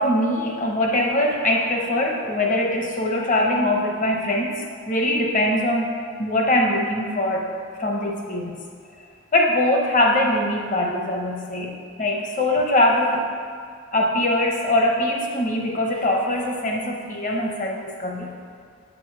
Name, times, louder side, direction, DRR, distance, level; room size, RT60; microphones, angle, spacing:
voice 1, 0.0-7.5 7.8-8.5 9.3-13.2 13.9-18.3, left 1 dB, 35° left, 0 dB, 0.8 m, -22 dB
8.0 x 5.2 x 4.7 m, 2.2 s
head